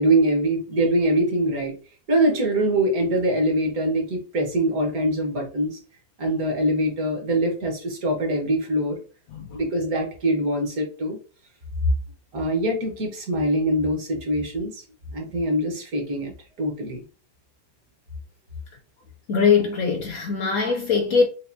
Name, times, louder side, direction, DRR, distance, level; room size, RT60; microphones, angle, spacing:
voice 1, 0.0-1.7 2.1-5.8 6.2-9.0 9.5-11.2 12.3-14.8 15.1-16.3 16.6-17.0, right 1 dB, 50° right, 1.5 m, -23 dB
voice 2, 19.3-21.2, left 5 dB, 70° left, 0.8 m, -21 dB
5.7 x 2.6 x 2.6 m
omnidirectional pair, 2.1 m